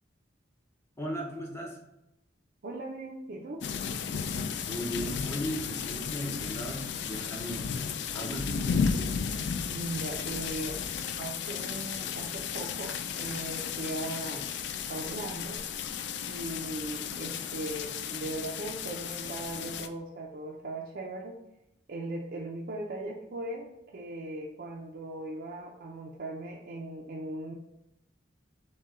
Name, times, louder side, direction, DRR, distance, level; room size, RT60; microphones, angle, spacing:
voice 1, 1.0-1.8 4.6-7.7 8.1-8.8, equal, 15° left, 0 dB, 0.8 m, -36 dB
voice 2, 2.6-3.6 9.7-10.8 11.2-14.5 14.9-15.6 16.3-21.3 21.9-27.5, right 1 dB, 55° right, -2 dB, 0.4 m, -38 dB
sound 1, 3.6-19.9, left 6 dB, 65° left, 0.3 m, -34 dB
6.4 x 2.2 x 3.6 m, 0.89 s
head